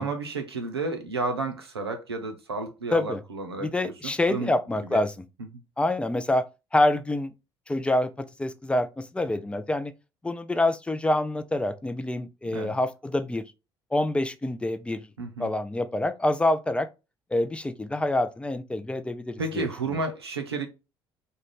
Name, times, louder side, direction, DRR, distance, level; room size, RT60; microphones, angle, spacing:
voice 1, 0.0-4.5 4.9-5.0 12.5-12.7 15.2-15.5 19.4-20.7, right 3 dB, 90° right, 0.5 m, -32 dB
voice 2, 2.9-3.2 3.6-5.2 5.8-6.4 6.7-7.3 7.7-8.1 8.4-9.9 10.2-13.4 13.9-15.1 15.4-16.9 17.3-20.0, left 1 dB, 10° left, 0.3 m, -26 dB
2.4 x 2.2 x 3.1 m
figure-of-eight pair, 55°, 13 cm